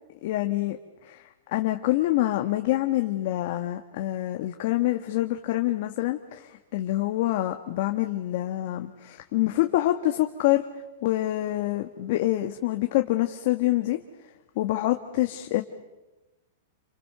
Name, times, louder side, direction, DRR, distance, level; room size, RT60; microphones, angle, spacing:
voice 1, 0.2-0.8 1.0-1.2 1.5-10.6 11.0-14.0 14.5-15.6, left 16 dB, 50° left, 5 dB, 1.5 m, -26 dB
28.5 x 26.0 x 6.9 m, 1.1 s
supercardioid pair, 155°, 0 cm